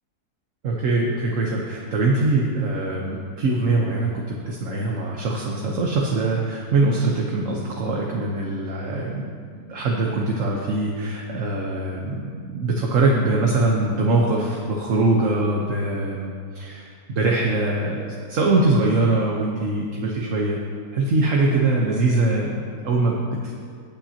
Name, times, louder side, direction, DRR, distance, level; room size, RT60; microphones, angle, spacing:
voice 1, 0.6-20.6 20.9-23.5, right 2 dB, 55° right, -2 dB, 1.4 m, -23 dB
19.0 x 8.9 x 2.9 m, 2.2 s
omnidirectional pair, 1.6 m